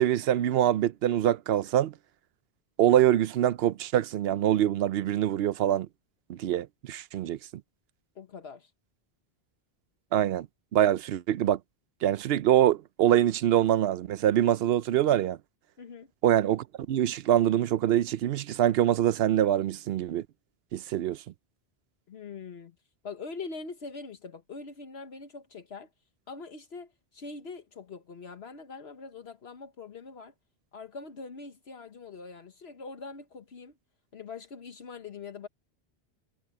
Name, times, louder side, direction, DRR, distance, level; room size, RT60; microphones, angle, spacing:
voice 1, 0.0-1.9 2.8-5.9 6.3-7.4 10.1-10.5 10.7-11.6 12.0-15.4 16.2-20.3 20.7-21.2, right 11 dB, 70° right, 0.8 m, -24 dB
voice 2, 8.1-8.7 15.8-16.1 22.1-22.7 23.0-25.9 26.3-30.3 30.7-33.8 34.1-35.5, left 4 dB, 75° left, 1.5 m, -43 dB
omnidirectional pair, 1.1 m